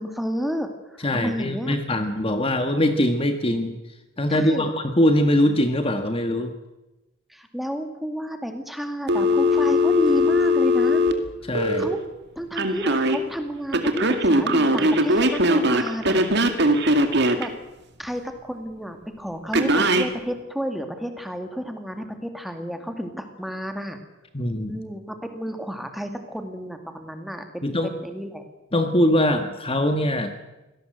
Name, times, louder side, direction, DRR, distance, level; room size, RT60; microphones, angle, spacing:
voice 1, 0.0-1.7 4.3-4.7 7.3-11.0 11.8-12.0 12.4-16.8 17.4-17.5 18.0-24.0 24.7-28.4, equal, ahead, 6 dB, 2.2 m, -31 dB
voice 2, 1.0-3.8 4.2-6.5 11.5-11.9 24.3-24.7 27.6-27.9 28.7-30.3, left 1 dB, 25° left, 7 dB, 1.6 m, -22 dB
Telephone, 9.1-11.8 12.6-13.2 13.7-17.5 19.5-20.1, left 1 dB, 55° right, 2.2 m, -20 dB
25.0 x 17.5 x 7.8 m, 1.0 s
head